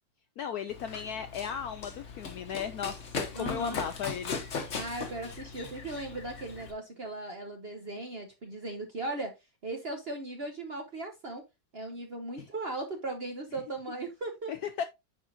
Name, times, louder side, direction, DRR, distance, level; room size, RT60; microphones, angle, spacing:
voice 1, 0.4-4.4 14.5-14.8, left 8 dB, 70° left, 0.9 m, -35 dB
Run, 0.7-6.7, left 4 dB, 45° left, 1.3 m, -39 dB
voice 2, 3.3-3.8 4.7-9.3 9.6-11.4 11.7-14.7, right 2 dB, 45° right, 0.8 m, -38 dB
9.4 x 4.3 x 2.5 m
omnidirectional pair, 2.1 m